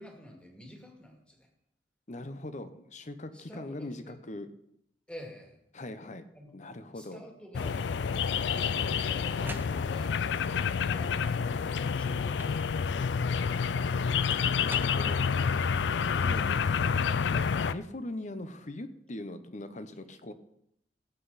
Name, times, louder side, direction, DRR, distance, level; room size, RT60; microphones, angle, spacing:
voice 1, 0.0-1.5 3.3-4.1 5.1-5.6 6.3-6.5 6.9-7.8 8.1-13.8 17.3-17.5, equal, 5° left, 1 dB, 2.3 m, -49 dB
voice 2, 2.1-4.5 5.7-6.2 6.5-7.2 14.3-15.3 15.8-16.4 17.6-20.3, left 1 dB, 45° left, 10 dB, 0.9 m, -41 dB
sound 1, 7.5-17.7, left 6 dB, 85° left, 0.4 m, -28 dB
sound 2, 8.7-10.3 11.1-11.7 12.4-12.9 14.3-15.6, right 2 dB, 10° right, 0.7 m, -47 dB
18.0 x 8.1 x 4.2 m, 0.76 s
head